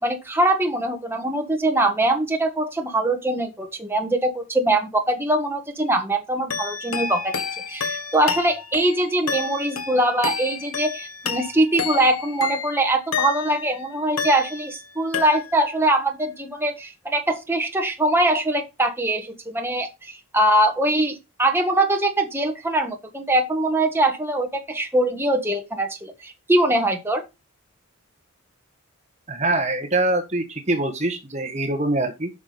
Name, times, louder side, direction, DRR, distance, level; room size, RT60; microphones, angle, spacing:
voice 1, 0.0-7.3 7.7-27.2, right 1 dB, 10° right, 3 dB, 1.6 m, -22 dB
sound 1, 6.5-13.7 14.2-14.9 15.1-15.8, left 6 dB, 80° left, 1.5 m, -30 dB
voice 2, 29.3-32.3, right 2 dB, 30° right, 6 dB, 1.4 m, -24 dB
10.0 x 6.1 x 5.2 m, 0.25 s
head